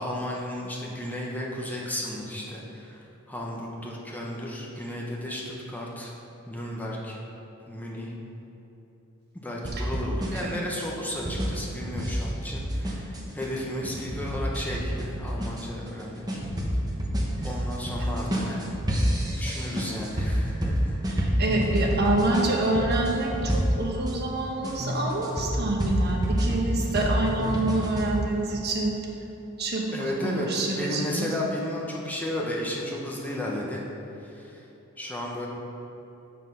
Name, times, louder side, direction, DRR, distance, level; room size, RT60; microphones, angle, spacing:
voice 1, 0.0-6.1 6.5-7.2 7.7-8.1 9.3-16.4 17.4-21.2 29.9-30.5 30.8-33.8 34.2-34.6 35.0-35.5, left 1 dB, 10° left, -3 dB, 0.9 m, -34 dB
sound 1, 9.6-24.1 24.6-28.1, equal, 20° right, 1.0 m, -28 dB
voice 2, 21.1-29.0 29.6-29.9 30.2-31.3, right 2 dB, 50° right, 0 dB, 1.1 m, -27 dB
7.1 x 6.1 x 5.6 m, 3.0 s
head